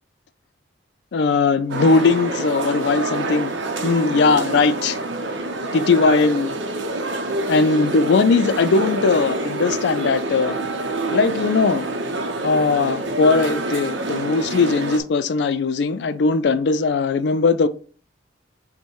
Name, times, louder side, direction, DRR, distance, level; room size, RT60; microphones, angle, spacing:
voice 1, 1.1-3.5 3.8-5.0 5.7-6.5 7.5-10.6 11.1-11.8 12.4-17.7, left 4 dB, 65° left, 0.4 m, -19 dB
sound 1, 1.7-15.0, right 2 dB, 80° right, 0.8 m, -26 dB
5.3 x 2.2 x 4.6 m
head